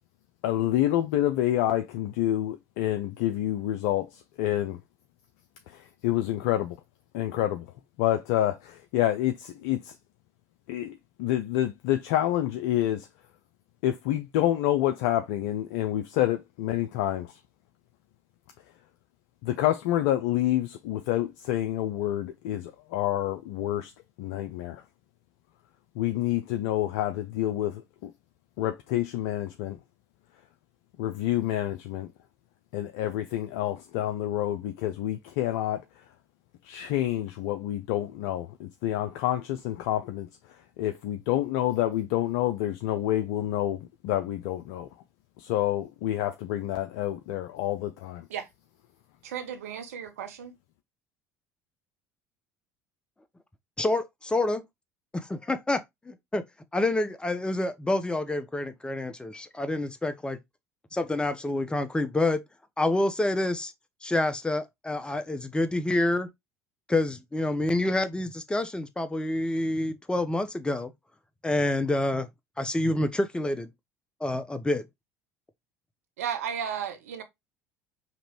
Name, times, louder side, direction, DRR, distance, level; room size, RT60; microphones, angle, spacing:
voice 1, 0.4-4.8 5.7-6.8 7.1-7.7 8.0-9.9 10.7-13.1 13.8-17.3 19.4-23.9 24.2-24.8 26.0-28.1 28.6-29.8 31.0-32.1 32.7-35.8 36.6-40.3 40.8-44.9 45.4-48.2, left 13 dB, 65° left, 0.4 m, -28 dB
voice 2, 49.2-50.6 76.2-77.2, right 8 dB, 75° right, 0.7 m, -34 dB
voice 3, 53.8-54.6 55.1-56.4 56.7-60.4 60.9-62.4 62.8-63.7 64.0-66.3 66.9-70.9 71.4-72.3 72.6-73.7 74.2-74.9, left 2 dB, 10° left, 0.8 m, -27 dB
5.1 x 2.9 x 3.0 m
figure-of-eight pair, 65°, 8 cm